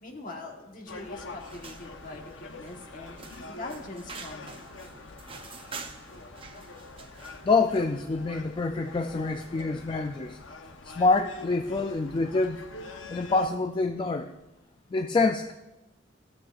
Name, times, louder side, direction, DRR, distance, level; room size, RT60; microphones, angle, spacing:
voice 1, 0.0-3.1 3.4-4.7, left 2 dB, 45° left, 1 dB, 1.4 m, -42 dB
Gull seagull, 0.9-13.5, left 3 dB, 90° left, 0.9 m, -45 dB
sound 1, 1.4-7.5, right 4 dB, 30° right, 0.6 m, -46 dB
voice 2, 7.4-10.4 10.8-14.3 14.9-15.5, left 3 dB, 25° left, 6 dB, 0.3 m, -26 dB
16.0 x 7.7 x 2.5 m, 1.0 s
head